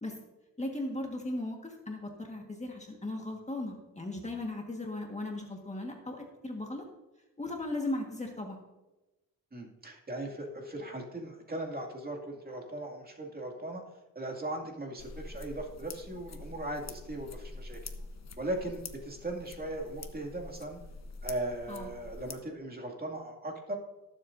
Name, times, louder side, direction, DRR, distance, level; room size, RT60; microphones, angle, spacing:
voice 1, 0.6-6.9 7.4-8.6 21.7-21.9, left 2 dB, 20° left, 1 dB, 1.6 m, -37 dB
voice 2, 9.5-13.8 14.1-17.9 18.4-20.8 21.2-23.8, right 1 dB, 25° right, 1 dB, 2.4 m, -38 dB
sound 1, 15.0-22.3, left 3 dB, 50° left, 1.1 m, -46 dB
19.0 x 7.7 x 2.7 m, 1.0 s
cardioid pair, 80°, 35 cm